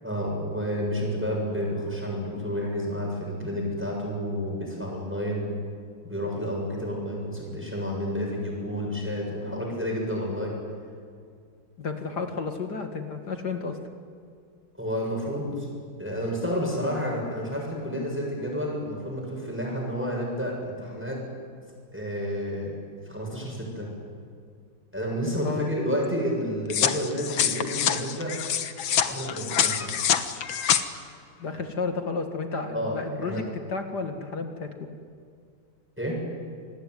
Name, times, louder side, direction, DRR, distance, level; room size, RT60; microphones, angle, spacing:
voice 1, 0.0-5.5 6.0-10.6 14.8-15.7 16.0-21.2 21.9-22.7 23.1-23.9 24.9-28.4 29.1-29.9 32.7-33.4 36.0-36.2, equal, 5° right, -2 dB, 7.2 m, -30 dB
voice 2, 11.8-13.8 25.4-25.7 31.4-34.9, left 4 dB, 55° left, 5 dB, 2.5 m, -32 dB
sound 1, 26.7-30.8, left 9 dB, 85° left, 2.0 m, -26 dB
27.5 x 20.0 x 9.5 m, 2.2 s
omnidirectional pair, 2.2 m